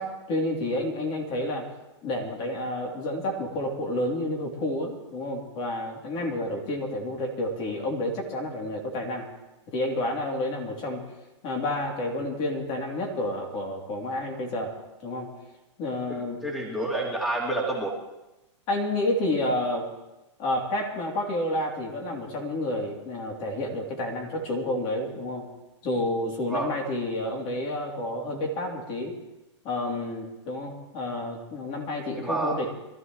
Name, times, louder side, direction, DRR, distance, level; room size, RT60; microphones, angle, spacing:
voice 1, 0.0-1.7 2.0-9.3 9.7-11.0 11.4-14.7 15.0-15.3 15.8-16.4 18.7-19.9 20.4-25.5 25.8-29.1 29.6-32.7, left 1 dB, 40° left, 0 dB, 3.2 m, -30 dB
voice 2, 16.1-17.9 26.5-26.7 32.1-32.6, right 2 dB, ahead, -2 dB, 2.6 m, -29 dB
24.5 x 13.5 x 3.2 m, 0.99 s
hypercardioid pair, 125°, 16 cm